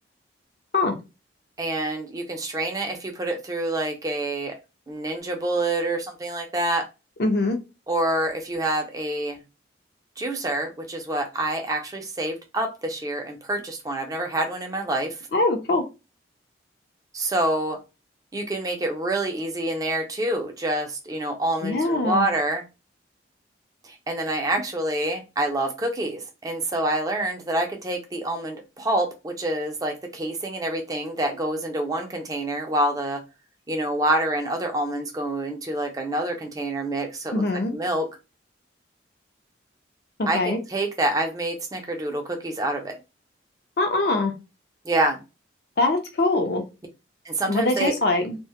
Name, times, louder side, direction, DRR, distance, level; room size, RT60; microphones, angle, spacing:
voice 1, 1.6-4.5 4.9-6.8 7.9-9.4 10.2-15.2 17.1-17.8 18.3-22.6 23.8-33.2 33.7-37.4 37.7-38.1 40.3-43.0 44.8-45.2 47.3-47.9, right 1 dB, 20° right, 3 dB, 0.4 m, -27 dB
voice 2, 7.2-7.6 15.3-15.8 21.6-22.3 37.3-37.7 40.2-40.6 43.8-44.3 45.8-46.6 47.5-48.4, left 2 dB, 55° left, 5 dB, 0.5 m, -23 dB
2.1 x 2.0 x 2.8 m, 0.28 s
head